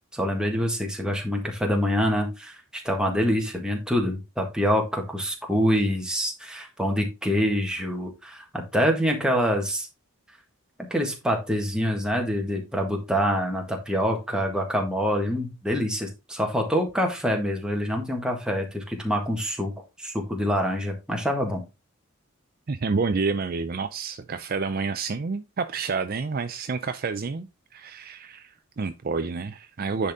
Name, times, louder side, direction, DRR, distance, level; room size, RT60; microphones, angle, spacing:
voice 1, 0.1-9.9 10.9-21.6, equal, 5° right, 1.6 m, -26 dB
voice 2, 22.7-27.5 27.7-30.1, right 4 dB, 40° right, 0.4 m, -29 dB
10.0 x 4.1 x 3.6 m
head